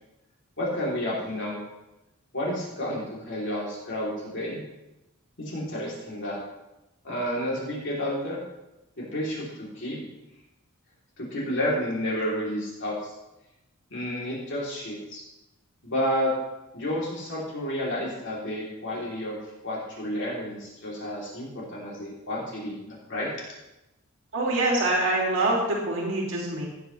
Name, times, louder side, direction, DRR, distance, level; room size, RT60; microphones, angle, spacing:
voice 1, 0.6-1.6 2.3-4.6 5.4-6.4 7.0-8.4 9.0-10.1 11.2-13.1 13.9-15.2 15.8-16.3 16.7-19.4 19.6-23.3, left 1 dB, 55° left, -5 dB, 3.5 m, -30 dB
voice 2, 24.3-26.6, right 2 dB, 60° right, -3 dB, 2.7 m, -25 dB
16.0 x 9.4 x 3.4 m, 0.96 s
head